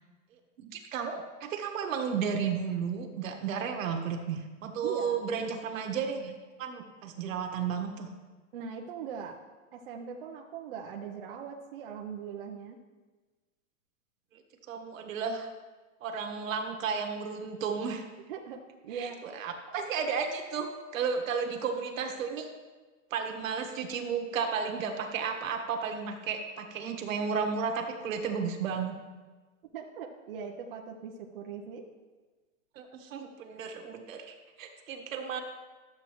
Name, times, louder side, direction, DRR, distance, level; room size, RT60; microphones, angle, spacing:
voice 1, 0.6-8.1 14.3-14.4 14.7-15.5 16.0-18.0 18.9-20.7 20.9-22.5 23.1-29.0 32.7-35.4, right 6 dB, 65° right, 4 dB, 1.5 m, -33 dB
voice 2, 4.8-5.2 8.5-9.4 9.7-12.8 18.3-18.6 18.8-19.4 29.7-31.8, right 7 dB, 40° right, 0 dB, 0.7 m, -40 dB
12.5 x 7.6 x 3.0 m, 1.3 s
supercardioid pair, 175°, 42 cm